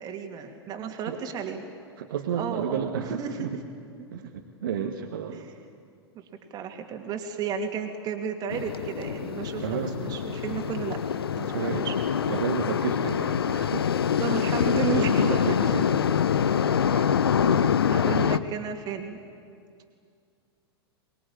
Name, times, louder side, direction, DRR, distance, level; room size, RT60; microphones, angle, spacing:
voice 1, 0.0-1.6 2.3-3.6 4.0-4.3 5.3-5.5 6.5-11.0 11.4-12.0 14.2-15.7 16.8-19.2, right 7 dB, 30° right, 4 dB, 2.6 m, -33 dB
voice 2, 2.0-3.5 4.1-5.4 9.6-10.0 11.5-11.9 12.3-13.9 14.3-14.5 15.2-15.9 17.5-17.6, right 7 dB, 55° right, 3 dB, 1.5 m, -32 dB
sound 1, 8.5-18.4, left 7 dB, 65° left, 0.7 m, -25 dB
24.0 x 21.0 x 8.8 m, 2.3 s
figure-of-eight pair, 95°, 13 cm